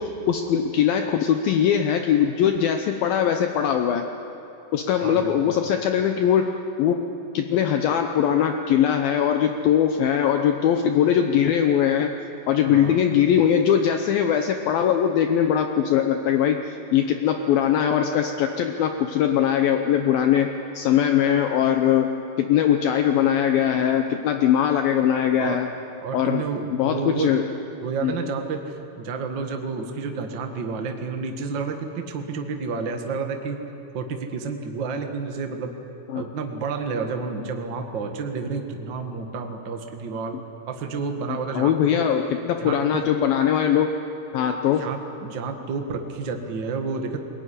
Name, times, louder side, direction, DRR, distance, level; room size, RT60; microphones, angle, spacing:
voice 1, 0.0-4.1 4.7-6.5 6.8-7.0 7.3-12.1 12.5-22.1 22.4-25.7 26.1-26.4 26.7-27.4 28.0-28.1 36.1-36.2 41.3-43.9 44.3-44.9, left 9 dB, 75° left, 5 dB, 2.4 m, -21 dB
voice 2, 5.0-5.6 12.7-13.0 25.4-25.6 26.0-27.4 27.8-33.6 33.9-35.7 36.1-40.4 40.7-42.1 42.6-43.1 44.6-47.2, right 4 dB, 75° right, 4 dB, 1.0 m, -30 dB
21.5 x 19.5 x 10.0 m, 2.8 s
omnidirectional pair, 4.9 m